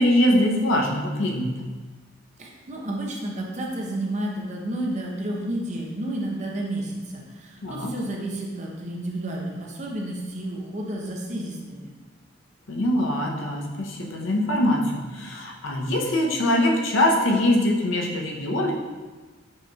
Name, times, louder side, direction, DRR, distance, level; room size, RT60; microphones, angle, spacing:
voice 1, 0.0-1.7 7.6-7.9 12.7-18.7, left 1 dB, 70° left, 0 dB, 0.6 m, -23 dB
voice 2, 2.4-11.9, right 1 dB, 35° right, -1 dB, 0.6 m, -31 dB
6.1 x 3.0 x 2.3 m, 1.3 s
head